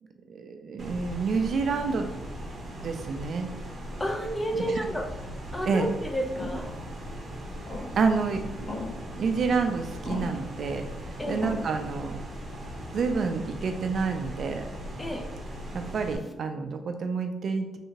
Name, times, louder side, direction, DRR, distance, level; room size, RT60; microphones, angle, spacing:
voice 1, 0.3-2.1 2.8-3.5 5.7-5.9 8.0-12.2 12.9-14.7 15.7-17.8, right 4 dB, 50° right, 6 dB, 0.3 m, -29 dB
sound 1, 0.8-16.2, equal, 35° right, 0.7 m, -39 dB
voice 2, 4.0-5.1 5.5-6.7 11.2-11.5 15.0-15.3, equal, 15° left, 2 dB, 0.5 m, -30 dB
sound 2, 6.4-6.6 7.7-8.1 8.7-9.2 10.0-10.5 11.4-11.9, left 2 dB, 50° left, 0.9 m, -37 dB
3.3 x 2.8 x 2.8 m, 0.99 s
cardioid pair, 130°, 0 cm